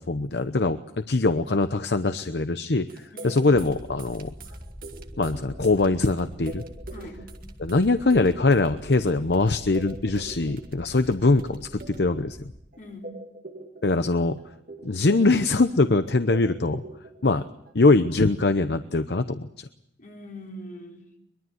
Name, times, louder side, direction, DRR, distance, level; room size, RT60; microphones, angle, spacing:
voice 1, 0.0-2.9 3.2-4.3 5.2-6.6 7.6-12.5 13.8-14.4 14.8-16.8 17.2-17.4 17.7-19.5, left 3 dB, 65° left, 10 dB, 0.8 m, -22 dB
sound 1, 2.9-12.4 12.7-14.1 14.4-15.7 16.0-17.4 17.7-17.8, right 2 dB, 50° right, 2.3 m, -43 dB
voice 2, 3.1-3.4 6.9-7.2 12.8-13.2 20.0-21.1, left 1 dB, 45° left, 0 dB, 5.0 m, -42 dB
sound 2, 3.5-12.6, equal, 5° left, 1.7 m, -44 dB
23.5 x 22.0 x 7.9 m, 0.77 s
head